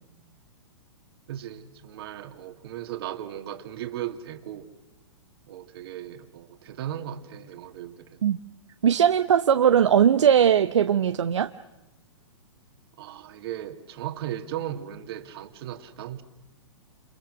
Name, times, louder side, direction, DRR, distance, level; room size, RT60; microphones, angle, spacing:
voice 1, 1.3-4.7 5.5-8.1 13.0-16.2, right 11 dB, 55° right, 8 dB, 2.5 m, -36 dB
voice 2, 8.8-11.5, right 8 dB, 70° right, 9 dB, 1.0 m, -19 dB
29.0 x 28.0 x 6.5 m, 0.96 s
hypercardioid pair, 120°, 16 cm